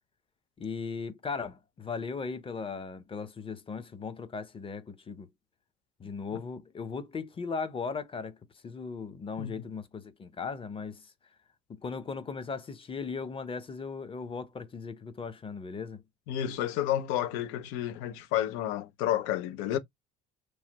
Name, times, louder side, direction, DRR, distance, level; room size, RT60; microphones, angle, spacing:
voice 1, 0.6-5.3 6.0-8.4 8.6-11.0 11.8-16.0, left 5 dB, 25° left, 0.7 m, -37 dB
voice 2, 16.3-19.8, left 12 dB, 85° left, 0.6 m, -31 dB
3.1 x 2.1 x 2.9 m
supercardioid pair, 95°, 21 cm